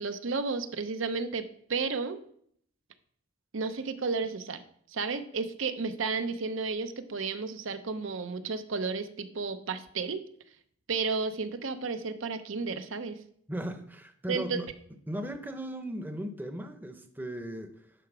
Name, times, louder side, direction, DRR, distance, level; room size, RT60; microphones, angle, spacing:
voice 1, 0.0-1.4 1.7-2.2 3.5-4.6 4.9-10.2 10.9-13.2 14.3-14.6, right 4 dB, 75° right, 10 dB, 0.7 m, -32 dB
voice 2, 13.5-14.7 15.1-17.9, right 1 dB, 10° right, 7 dB, 0.7 m, -37 dB
10.0 x 4.8 x 6.1 m, 0.65 s
head